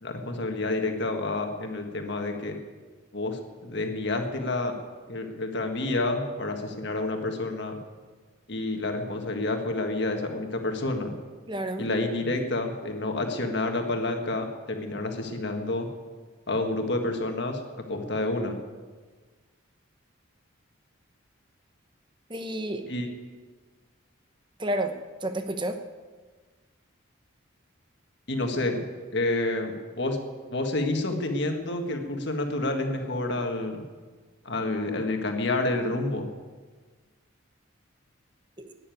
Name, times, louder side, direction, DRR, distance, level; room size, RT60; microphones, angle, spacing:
voice 1, 0.0-2.6 3.1-4.7 5.1-7.8 8.5-11.2 11.8-15.9 16.5-17.6 17.9-18.6 22.8-23.1 28.3-28.8 29.1-30.2 30.5-33.8 34.5-36.3, left 2 dB, 55° left, 4 dB, 1.7 m, -29 dB
voice 2, 11.5-11.9 22.3-22.9 24.6-24.9 25.2-25.8 38.6-38.7, right 1 dB, 20° right, 7 dB, 0.9 m, -30 dB
12.0 x 9.9 x 9.3 m, 1.4 s
head